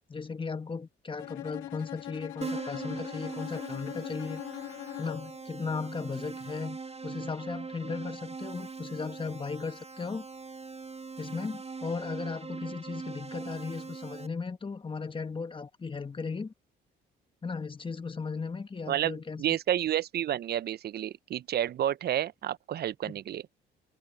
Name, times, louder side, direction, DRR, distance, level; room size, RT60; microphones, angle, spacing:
voice 1, 0.1-4.4 5.0-6.8 7.0-10.2 11.2-16.5 17.4-19.4 23.1-23.2, left 4 dB, 25° left, 1.4 m, -36 dB
Bowed string instrument, 1.2-5.4, left 14 dB, 90° left, 2.3 m, -41 dB
Keyboard (musical), 2.4-14.3, right 4 dB, 30° right, 1.3 m, -41 dB
voice 2, 18.9-23.4, right 11 dB, 55° right, 0.5 m, -30 dB
cardioid pair, 90°, 20 cm